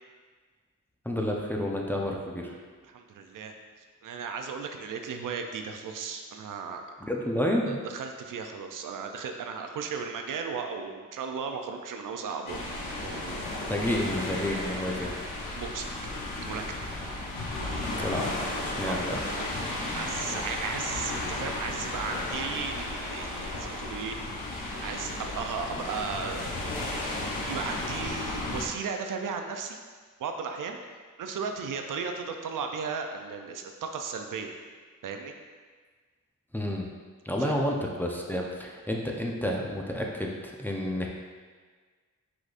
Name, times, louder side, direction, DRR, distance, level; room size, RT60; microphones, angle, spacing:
voice 1, 1.1-2.5 7.0-7.8 13.3-15.2 18.0-18.3 18.6-19.2 36.5-36.9 37.2-41.1, left 1 dB, 5° left, -1 dB, 0.6 m, -30 dB
voice 2, 2.9-3.5 4.0-6.8 7.7-12.6 13.0-13.4 15.0-15.1 15.5-16.1 16.4-16.9 18.8-19.0 19.3-19.5 19.9-24.2 24.6-26.5 27.4-29.8 30.2-30.8 31.2-34.5 35.0-35.3 37.4-37.6, right 5 dB, 75° right, 4 dB, 0.5 m, -35 dB
sound 1, 12.5-28.7, left 2 dB, 85° left, 0.8 m, -34 dB
4.8 x 4.0 x 2.5 m, 1.5 s
cardioid pair, 60°, 33 cm